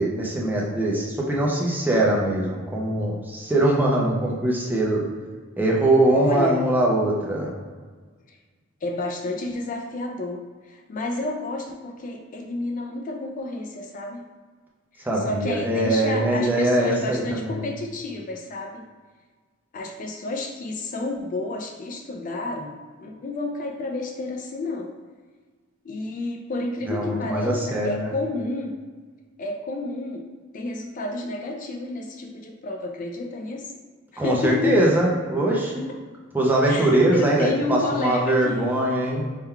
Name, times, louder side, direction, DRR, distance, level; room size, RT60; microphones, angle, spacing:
voice 1, 0.0-5.0 5.6-7.5 15.0-17.7 26.9-28.1 34.2-35.9 36.3-39.2, right 1 dB, 10° right, -3 dB, 0.6 m, -22 dB
voice 2, 6.1-6.6 8.8-14.2 15.0-18.8 19.7-22.7 23.0-24.9 25.8-28.7 29.4-30.2 30.5-33.7 34.1-34.7 36.7-38.7, left 2 dB, 40° left, 1 dB, 0.4 m, -30 dB
3.7 x 2.2 x 4.4 m, 1.5 s
head